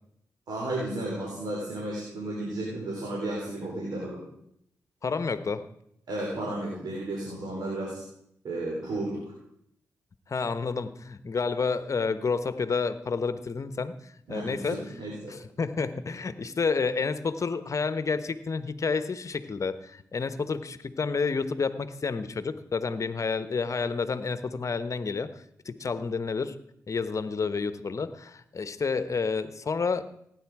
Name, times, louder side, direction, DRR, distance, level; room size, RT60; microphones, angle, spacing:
voice 1, 0.5-4.2 6.1-8.0 8.4-9.2 14.3-15.3, right 1 dB, 75° right, -3 dB, 3.8 m, -33 dB
voice 2, 5.0-5.6 10.3-13.9 14.3-14.8 15.3-25.3 25.6-26.5 26.9-30.1, left 4 dB, 50° left, 12 dB, 1.0 m, -30 dB
16.5 x 9.6 x 4.8 m, 0.74 s
supercardioid pair, 50°, 7 cm